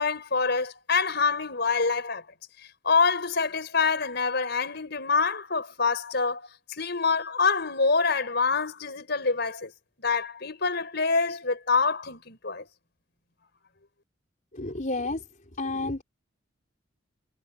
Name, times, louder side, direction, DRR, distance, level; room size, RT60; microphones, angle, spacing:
voice 1, 0.0-2.3 2.8-9.7 10.0-12.7, left 4 dB, 60° left, 5.1 m, -26 dB
voice 2, 14.5-15.3 15.6-16.0, left 2 dB, 45° left, 4.2 m, -30 dB
head